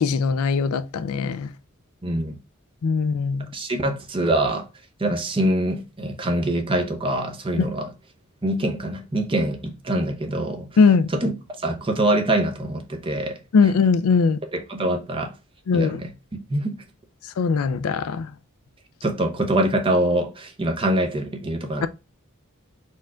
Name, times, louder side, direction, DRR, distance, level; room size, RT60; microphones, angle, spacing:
voice 1, 0.0-1.5 2.8-3.5 10.8-11.1 13.5-14.4 15.7-16.0 17.4-18.3, left 5 dB, 75° left, 0.4 m, -20 dB
voice 2, 2.0-2.4 3.5-4.7 5.0-7.9 8.4-10.7 11.1-11.3 11.6-13.4 14.5-15.3 15.7-16.1 16.5-16.8 19.0-21.9, right 1 dB, 25° right, 0.7 m, -24 dB
4.3 x 2.4 x 4.3 m
head